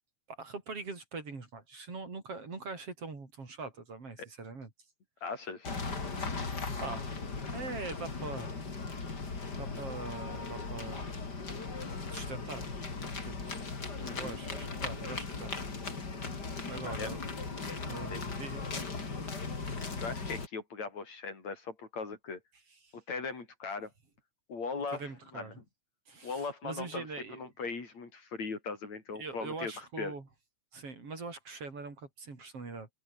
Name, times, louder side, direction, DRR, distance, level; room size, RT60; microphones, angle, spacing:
voice 1, 0.3-4.7 6.8-7.2 7.5-8.5 9.6-11.1 12.1-12.7 13.2-13.5 14.1-15.5 16.7-17.2 17.8-18.7 22.8-22.9 24.9-25.6 26.1-27.4 29.1-30.3 30.7-32.9, right 3 dB, 50° right, 5.5 m, -42 dB
voice 2, 5.2-5.7 14.0-14.4 16.9-17.1 18.1-18.2 20.0-22.4 22.9-23.9 24.5-25.5 26.2-27.1 27.3-30.1, left 4 dB, 60° left, 5.9 m, -39 dB
sound 1, 5.6-20.5, left 4 dB, 30° left, 3.8 m, -38 dB
omnidirectional pair, 3.5 m